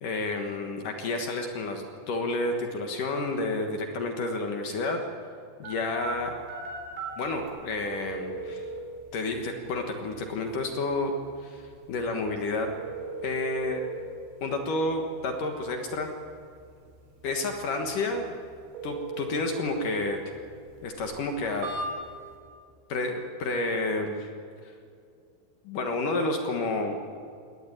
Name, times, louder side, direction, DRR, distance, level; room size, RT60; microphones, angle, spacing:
voice 1, 0.0-5.0 5.6-6.3 7.2-8.7 9.1-11.1 11.4-12.7 13.2-13.8 14.4-16.1 17.2-18.4 18.8-20.2 20.8-21.7 22.9-24.3 25.6-27.0, left 2 dB, 60° left, 4 dB, 2.3 m, -30 dB
sound 1, 5.6-22.4, right 3 dB, 60° right, 5.4 m, -40 dB
20.5 x 18.0 x 9.9 m, 2.4 s
omnidirectional pair, 5.5 m